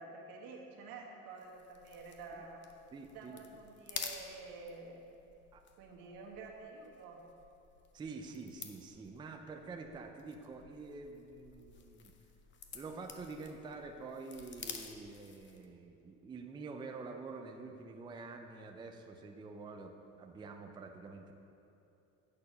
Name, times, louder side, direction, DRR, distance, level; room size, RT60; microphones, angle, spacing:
voice 1, 0.0-2.6 3.1-5.0 5.8-7.2, right 3 dB, 80° right, -1 dB, 1.6 m, -49 dB
sound 1, 1.4-15.7, left 6 dB, 35° left, 0.7 m, -51 dB
voice 2, 2.9-3.4 5.5-5.6 7.9-12.1 12.7-21.3, right 4 dB, 15° right, 4 dB, 0.4 m, -47 dB
8.3 x 6.8 x 5.4 m, 2.8 s
cardioid pair, 150°, 33 cm